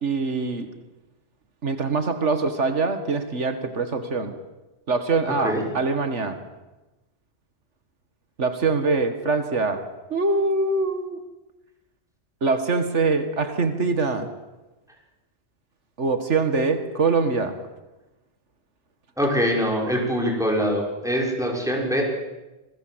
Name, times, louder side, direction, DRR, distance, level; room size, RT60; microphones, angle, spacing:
voice 1, 0.0-0.7 1.6-4.3 4.9-6.4 8.4-9.8 10.1-11.2 12.4-14.3 16.0-17.6, right 3 dB, 90° right, 8 dB, 2.2 m, -23 dB
voice 2, 19.2-22.0, equal, 5° right, -1 dB, 5.9 m, -23 dB
27.5 x 19.5 x 8.0 m, 1.1 s
omnidirectional pair, 1.2 m